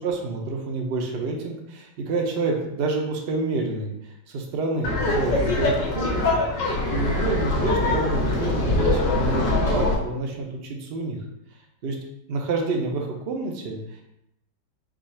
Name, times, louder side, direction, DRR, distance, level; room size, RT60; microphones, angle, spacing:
voice 1, 0.0-11.2 11.8-12.0 12.3-14.0, right 3 dB, 55° right, 1 dB, 0.7 m, -28 dB
Laughter, 4.8-9.9, left 2 dB, 85° left, 1.5 m, -23 dB
4.8 x 2.4 x 4.3 m, 0.82 s
omnidirectional pair, 1.8 m